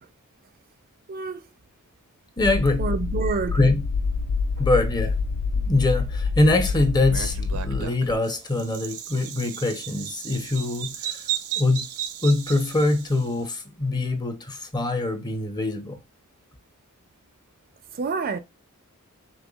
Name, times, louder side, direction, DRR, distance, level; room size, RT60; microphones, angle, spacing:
voice 1, 1.1-1.5 2.8-3.6 4.6-4.7 17.9-18.4, right 4 dB, 40° right, 0.4 m, -28 dB
sound 1, 2.4-7.8, left 4 dB, 80° left, 0.4 m, -26 dB
voice 2, 2.4-2.8 3.5-3.8 4.6-5.2 5.6-11.2 11.6-11.9 12.2-16.0, left 2 dB, 20° left, 0.7 m, -23 dB
Bird vocalization bird call bird song, 7.0-13.3, right 10 dB, 85° right, 0.6 m, -34 dB
5.2 x 3.3 x 2.3 m
head